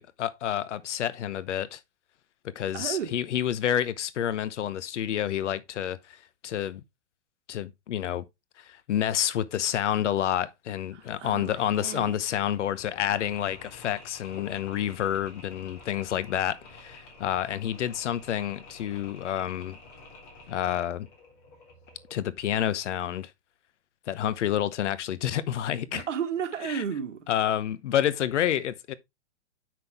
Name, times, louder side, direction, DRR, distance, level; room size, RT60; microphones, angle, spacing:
voice 1, 0.0-1.8 2.4-6.2 6.4-6.8 7.5-8.2 8.6-19.8 20.5-21.1 22.1-23.3 24.1-26.1 26.6-26.8 27.3-28.9, left 10 dB, 75° left, 1.0 m, -29 dB
voice 2, 2.7-3.1 10.9-12.2 25.9-27.3, right 8 dB, 90° right, 1.6 m, -33 dB
Mechanisms, 12.5-22.2, left 3 dB, 30° left, 3.2 m, -50 dB
7.6 x 6.1 x 3.5 m
hypercardioid pair, 160°, 36 cm